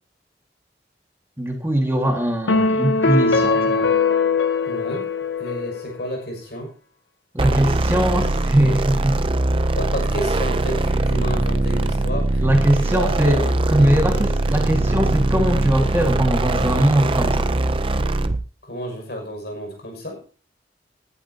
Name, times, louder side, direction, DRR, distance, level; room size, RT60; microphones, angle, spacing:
voice 1, 1.4-3.9 7.3-9.2 12.4-17.5, right 1 dB, 15° right, 2 dB, 1.9 m, -21 dB
sound 1, 2.5-6.0, left 4 dB, 85° left, 1.2 m, -20 dB
voice 2, 4.7-5.1 5.4-6.7 9.7-12.4 12.9-14.2 18.6-20.2, equal, 60° left, 2 dB, 6.3 m, -31 dB
sound 2, 7.4-18.5, right 2 dB, 30° right, 0.6 m, -21 dB
19.5 x 11.5 x 2.8 m, 0.38 s
head